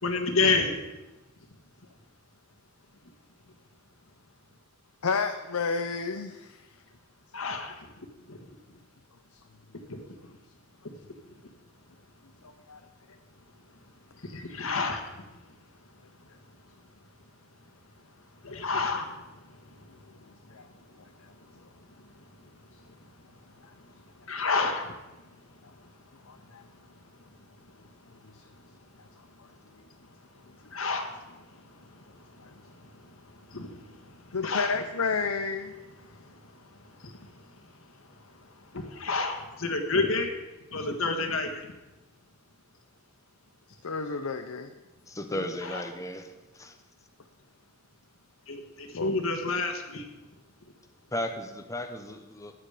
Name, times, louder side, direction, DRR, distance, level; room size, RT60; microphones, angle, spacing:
voice 1, 0.0-0.8 7.3-8.4 9.9-10.0 14.2-15.2 18.4-21.0 21.5-21.6 22.4-22.5 23.9-25.3 25.8-25.9 27.6-27.7 30.5-34.7 36.1-37.6 38.0-40.4 40.7-41.7 45.6-45.8 48.5-50.1, left 3 dB, 65° left, 5 dB, 1.7 m, -32 dB
voice 2, 5.0-6.6 12.4-12.8 20.5-20.7 21.0-21.1 26.3-26.6 28.3-28.4 32.4-32.5 34.3-35.7 43.8-44.7 45.3-45.4 49.0-49.1, left 4 dB, 90° left, 6 dB, 0.8 m, -31 dB
voice 3, 45.1-46.8 51.1-52.5, left 1 dB, 15° left, 6 dB, 1.0 m, -35 dB
14.0 x 9.8 x 5.1 m, 1.1 s
head